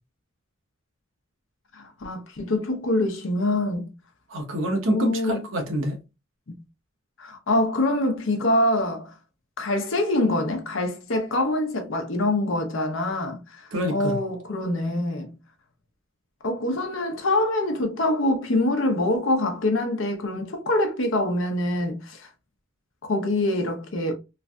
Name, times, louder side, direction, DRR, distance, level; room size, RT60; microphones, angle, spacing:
voice 1, 1.7-3.9 4.9-5.4 7.2-9.1 9.6-15.3 16.4-22.3 23.0-24.1, left 1 dB, 70° left, 0.7 m, -25 dB
voice 2, 4.3-6.0 13.7-14.2, equal, 70° right, 1.0 m, -26 dB
3.2 x 2.6 x 2.2 m
head